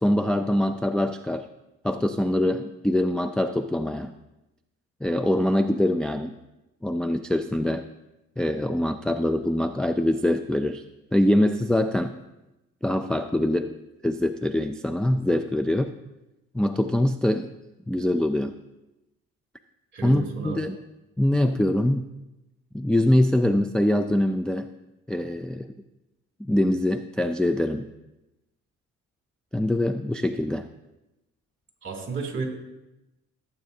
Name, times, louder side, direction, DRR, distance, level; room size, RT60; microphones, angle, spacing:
voice 1, 0.0-1.5 1.8-4.1 5.0-6.3 6.8-7.8 8.4-10.8 11.1-12.2 12.8-13.8 14.0-15.9 16.5-17.5 17.9-18.5 20.0-20.7 21.2-22.0 22.7-24.7 25.1-25.7 26.5-27.9 29.5-30.7, left 1 dB, 5° left, 6 dB, 0.3 m, -23 dB
voice 2, 19.9-20.6 31.8-32.4, right 5 dB, 40° right, 1 dB, 2.8 m, -32 dB
15.0 x 8.2 x 2.7 m, 0.97 s
cardioid pair, 90°, 30 cm